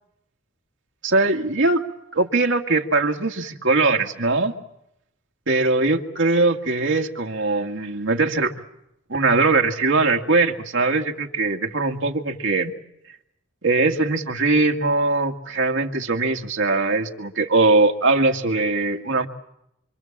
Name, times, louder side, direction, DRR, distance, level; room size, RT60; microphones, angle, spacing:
voice 1, 1.0-1.8 2.1-4.5 5.5-8.5 9.1-12.7 13.6-19.3, right 3 dB, 70° right, 3 dB, 2.1 m, -21 dB
26.5 x 26.0 x 7.5 m, 0.81 s
head